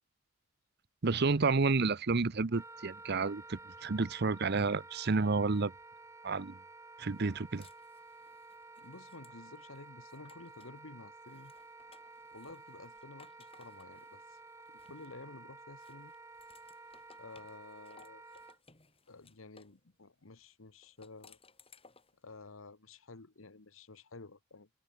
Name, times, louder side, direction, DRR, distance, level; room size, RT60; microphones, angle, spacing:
voice 1, 1.0-5.7 6.2-6.6 7.0-7.7, right 4 dB, 55° right, 0.7 m, -30 dB
Wind instrument woodwind instrument, 2.5-18.6, right 3 dB, 15° right, 1.2 m, -52 dB
sound 1, 7.1-10.8 11.2-15.4 15.8-19.8 20.8-22.2, left 5 dB, 30° left, 5.8 m, -63 dB
voice 2, 8.8-11.5 12.3-14.4 14.8-16.1 17.2-18.4 19.1-21.4 22.2-24.7, left 3 dB, 85° left, 1.4 m, -52 dB
head